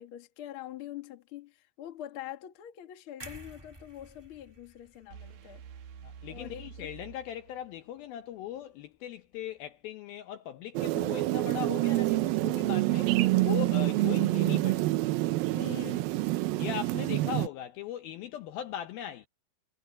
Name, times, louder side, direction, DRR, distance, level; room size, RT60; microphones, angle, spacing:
voice 1, 0.0-5.6 6.3-6.9 15.5-16.3, left 12 dB, 55° left, 1.5 m, -44 dB
sound 1, 3.2-7.2 7.6-7.8, right 1 dB, 30° right, 0.4 m, -52 dB
sound 2, 5.1-8.0, right 7 dB, 60° right, 2.9 m, -48 dB
voice 2, 6.0-14.9 16.6-19.3, left 11 dB, 75° left, 2.3 m, -39 dB
sound 3, 10.8-17.5, right 18 dB, 75° right, 2.3 m, -27 dB
omnidirectional pair, 5.1 m